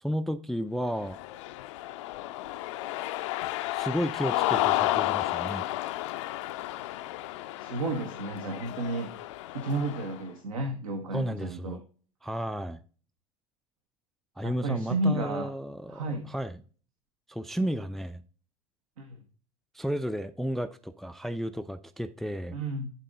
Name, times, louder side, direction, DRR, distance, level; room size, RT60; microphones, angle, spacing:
voice 1, 0.0-1.2 3.7-5.7 11.1-11.8 12.2-12.8 14.4-16.6 17.3-18.2 19.7-22.6, equal, ahead, 0.4 m, -33 dB
Cheering, 1.0-10.2, left 16 dB, 55° left, 0.5 m, -32 dB
voice 2, 7.6-9.1 9.5-11.8 14.4-15.5 15.9-16.3 19.0-19.2 22.5-22.9, right 2 dB, 70° right, 1.0 m, -32 dB
11.0 x 4.1 x 3.7 m
figure-of-eight pair, 70°, 18 cm